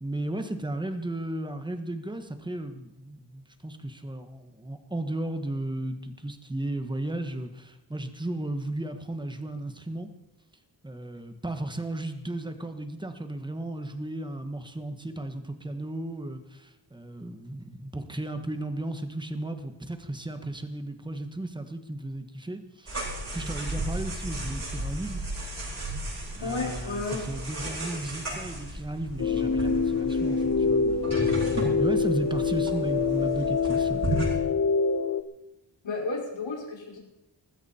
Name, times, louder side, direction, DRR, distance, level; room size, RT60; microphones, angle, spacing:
voice 1, 0.0-10.1 10.8-23.0 23.3-25.2 26.3-31.5 31.8-34.0, right 1 dB, 10° right, 8 dB, 1.3 m, -35 dB
sound 1, 22.9-34.4, right 1 dB, 35° right, 7.9 m, -34 dB
voice 2, 26.4-27.2 35.8-37.0, left 3 dB, 85° left, -2 dB, 5.4 m, -32 dB
sound 2, 29.2-35.2, left 5 dB, 40° left, 0.9 m, -25 dB
19.5 x 15.5 x 4.4 m, 0.91 s
wide cardioid pair, 175°, 44 cm